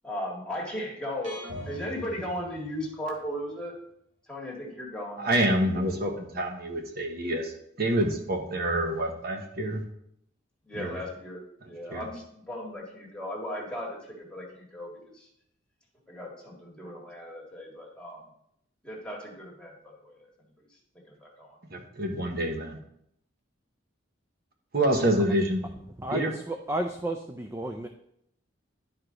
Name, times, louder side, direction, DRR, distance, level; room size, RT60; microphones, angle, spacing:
voice 1, 0.0-1.4 1.7-3.7 4.3-5.4 10.7-15.3 16.1-18.3 18.8-20.3 21.1-21.6, equal, 5° left, -4 dB, 1.9 m, -37 dB
sound 1, 1.2-3.2, left 1 dB, 80° right, 2.3 m, -42 dB
voice 2, 5.2-9.8 10.7-11.0 11.9-12.0 21.7-22.8 24.7-25.6 26.1-26.3, right 1 dB, 50° right, 3 dB, 1.1 m, -27 dB
voice 3, 26.0-27.9, right 1 dB, 15° right, 6 dB, 0.4 m, -32 dB
11.0 x 4.9 x 3.9 m, 0.74 s
head